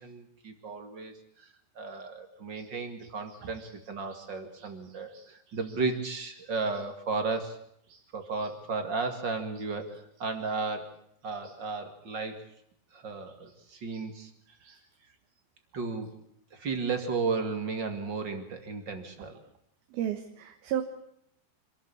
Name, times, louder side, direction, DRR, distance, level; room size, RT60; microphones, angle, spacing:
voice 1, 0.0-1.5 1.8-7.6 8.1-10.9 11.2-12.5 12.9-14.3 15.7-16.2 16.5-19.4, right 4 dB, 35° right, 6 dB, 2.1 m, -34 dB
voice 2, 3.3-3.7 4.1-4.2 4.5-5.7 7.9-8.0 8.4-8.5 11.4-11.5 13.7-14.0 14.6-14.8 19.9-20.8, right 10 dB, 70° right, 6 dB, 3.0 m, -38 dB
26.0 x 13.5 x 8.5 m, 0.72 s
omnidirectional pair, 4.7 m